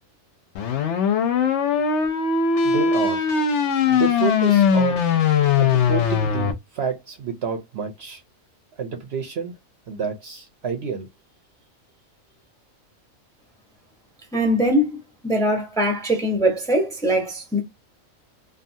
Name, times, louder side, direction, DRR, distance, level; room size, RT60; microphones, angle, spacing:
sound 1, 0.5-6.5, left 6 dB, 65° left, 0.8 m, -20 dB
voice 1, 2.6-3.3 3.9-5.0 5.6-8.2 8.8-9.5 9.9-11.1, right 6 dB, 60° right, 0.8 m, -29 dB
voice 2, 14.3-15.0 15.2-17.6, equal, 5° left, 0.7 m, -21 dB
2.7 x 2.3 x 2.6 m
omnidirectional pair, 1.4 m